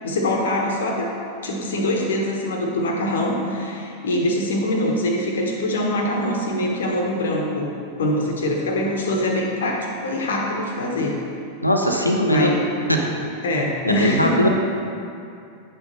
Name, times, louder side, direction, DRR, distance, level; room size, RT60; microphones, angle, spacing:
voice 1, 0.0-1.1 1.4-11.2 12.3-12.6 13.4-14.5, left 1 dB, 65° left, 1 dB, 1.2 m, -24 dB
voice 2, 11.6-12.5 12.9-13.0 13.8-14.5, equal, 85° left, 1 dB, 0.8 m, -19 dB
9.3 x 5.6 x 4.1 m, 2.5 s
figure-of-eight pair, 90°, 0 cm